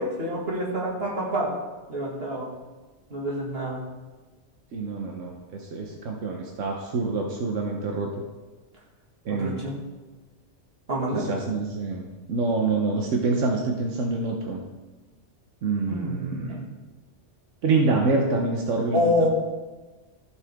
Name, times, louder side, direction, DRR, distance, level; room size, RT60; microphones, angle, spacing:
voice 1, 0.0-1.5 1.9-2.5 3.1-3.8 9.3-9.8 10.9-11.3 15.9-16.7 18.9-19.3, equal, 55° right, -4 dB, 2.4 m, -27 dB
voice 2, 4.7-8.2 9.2-9.6 11.3-14.6 15.6-16.6 17.6-19.3, right 3 dB, 90° right, 1 dB, 1.3 m, -26 dB
15.0 x 5.6 x 3.6 m, 1.2 s
omnidirectional pair, 1.2 m